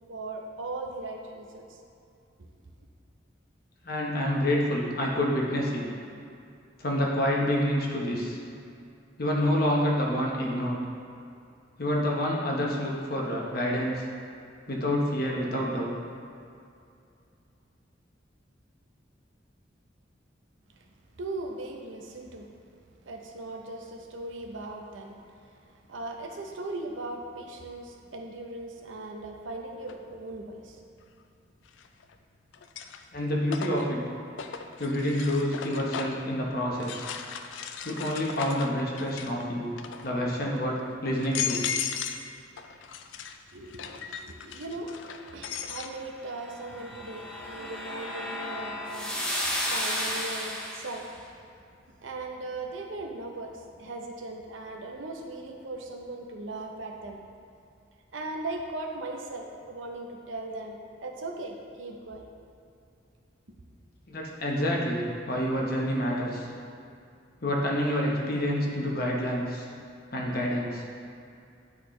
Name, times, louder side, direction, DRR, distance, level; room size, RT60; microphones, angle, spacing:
voice 1, 0.1-1.8 2.4-2.5 20.8-20.9 21.2-22.5 23.0-30.8 43.5-44.9 45.3-51.4 52.0-57.2 58.1-62.3, right 2 dB, 85° right, 1 dB, 0.7 m, -39 dB
voice 2, 3.8-5.8 6.8-8.4 9.2-10.8 11.8-14.0 14.7-15.9 33.1-34.0 34.8-37.0 37.8-39.7 40.0-41.6 64.1-66.5 67.4-69.7 70.1-70.8, equal, 50° left, -2 dB, 1.0 m, -28 dB
sound 1, 29.9-30.0 31.7-32.1 32.5-36.3 36.8-39.4 39.7-40.2 40.8-40.9 41.2-42.3 42.6-45.9, left 7 dB, 75° left, 0.4 m, -36 dB
sound 2, 46.4-51.0, left 1 dB, 5° left, 0.6 m, -33 dB
8.6 x 4.1 x 3.1 m, 2.5 s
head